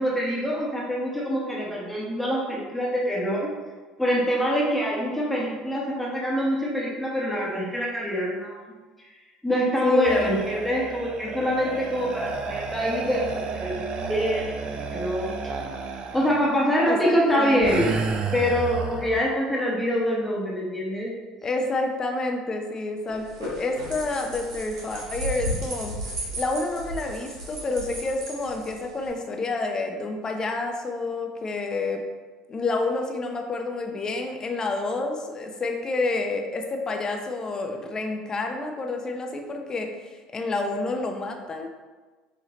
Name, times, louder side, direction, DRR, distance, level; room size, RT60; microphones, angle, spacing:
voice 1, 0.0-3.5 4.0-8.6 9.4-13.8 14.1-14.5 14.9-15.3 16.1-17.9 18.3-21.1, equal, 5° left, -5 dB, 1.1 m, -25 dB
voice 2, 9.8-10.4 16.8-17.9 21.4-25.9 26.4-32.0 32.5-39.9 40.3-41.7, left 3 dB, 30° left, 3 dB, 0.6 m, -29 dB
sound 1, 10.1-16.6 17.6-19.2, right 4 dB, 50° right, 0.5 m, -32 dB
sound 2, 23.1-29.1, right 1 dB, 85° right, 1.4 m, -34 dB
5.8 x 2.7 x 2.9 m, 1.3 s
hypercardioid pair, 80°, 2 cm